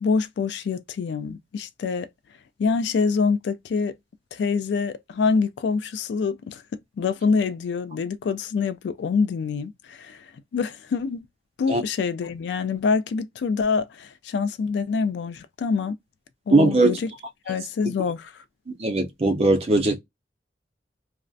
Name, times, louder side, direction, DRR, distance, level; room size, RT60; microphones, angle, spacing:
voice 1, 0.0-2.1 2.6-3.9 4.3-6.6 7.0-11.3 11.6-16.0 16.5-17.1 17.5-18.4, left 5 dB, 80° left, 0.3 m, -25 dB
voice 2, 16.5-17.0 18.8-20.0, right 2 dB, 35° right, 0.5 m, -19 dB
2.4 x 2.0 x 2.5 m
head